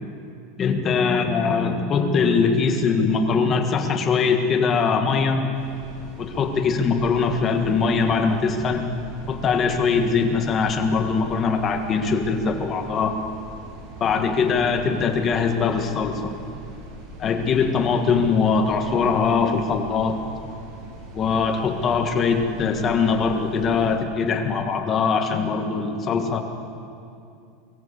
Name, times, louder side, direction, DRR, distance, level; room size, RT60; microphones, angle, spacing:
voice 1, 0.6-5.4 6.2-8.8 9.3-13.2 14.0-16.3 17.2-20.2 21.1-26.4, left 5 dB, 25° left, 4 dB, 1.7 m, -22 dB
sound 1, 5.5-24.0, right 2 dB, 50° right, 7.5 m, -41 dB
22.5 x 15.0 x 8.4 m, 2.5 s
supercardioid pair, 170°, 0 cm